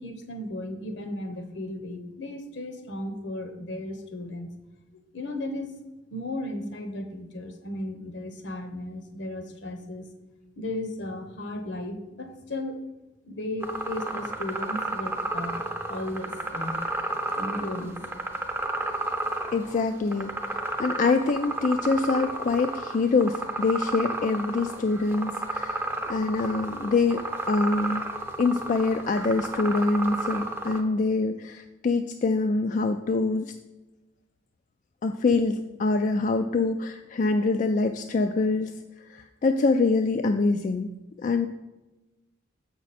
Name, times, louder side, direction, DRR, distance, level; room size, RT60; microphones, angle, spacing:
voice 1, 0.0-4.5 4.9-5.7 6.1-10.0 10.6-12.8 13.2-15.6 15.9-16.8 17.3-18.0, left 1 dB, 70° left, 6 dB, 1.0 m, -35 dB
sound 1, 13.6-30.8, right 2 dB, 10° right, 0.6 m, -32 dB
voice 2, 19.5-20.3 20.8-25.8 26.1-28.0 28.4-33.5 35.0-38.7 39.1-40.9 41.2-41.5, left 3 dB, 40° left, 6 dB, 0.3 m, -25 dB
7.3 x 5.9 x 4.2 m, 1.1 s
head